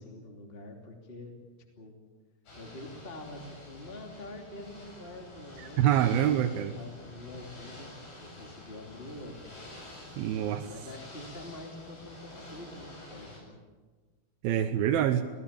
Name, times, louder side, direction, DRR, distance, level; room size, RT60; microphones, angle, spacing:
voice 1, 0.0-1.3 1.8-1.9 2.6-7.9 8.2-9.4 10.7-13.6, left 1 dB, 15° left, 3 dB, 2.6 m, -46 dB
Ocean / Boat Water vehicle, 2.5-13.4, left 1 dB, 90° left, 9.8 m, -48 dB
voice 2, 5.6-6.7 10.2-10.7 14.4-15.2, right 10 dB, 85° right, 5 dB, 2.9 m, -26 dB
26.5 x 19.0 x 8.8 m, 1.4 s
omnidirectional pair, 4.2 m